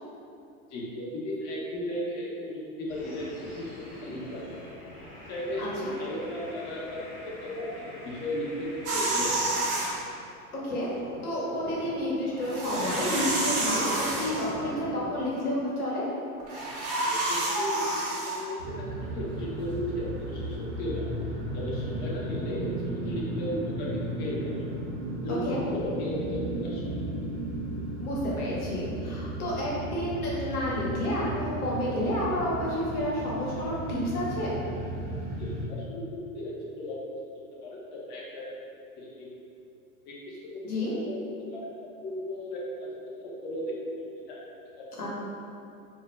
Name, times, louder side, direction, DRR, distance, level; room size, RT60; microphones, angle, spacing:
voice 1, 0.7-4.7 5.3-7.7 8.0-9.4 16.9-20.5 20.8-21.0 21.5-23.9 24.2-24.5 25.2-26.8 35.4-37.0 37.6-38.4 39.0-39.3 40.0-40.6 40.9-41.2 41.5-41.7 42.0-43.6 44.3-44.4, left 1 dB, 25° left, -5 dB, 0.4 m, -35 dB
sound 1, 2.9-10.1 10.5-15.3, left 1 dB, 55° left, 0.9 m, -44 dB
voice 2, 5.6-5.9 10.6-10.9 11.2-16.0 25.3-25.6 28.0-34.6 40.6-40.9 45.0-45.1, equal, 85° left, -6 dB, 0.9 m, -30 dB
sound 2, 8.9-9.9 12.4-14.5 16.4-18.4, right 2 dB, 35° right, 0.6 m, -29 dB
sound 3, 18.6-35.7, right 1 dB, 85° right, 0.7 m, -35 dB
2.2 x 2.0 x 2.9 m, 2.5 s
hypercardioid pair, 105°, 43 cm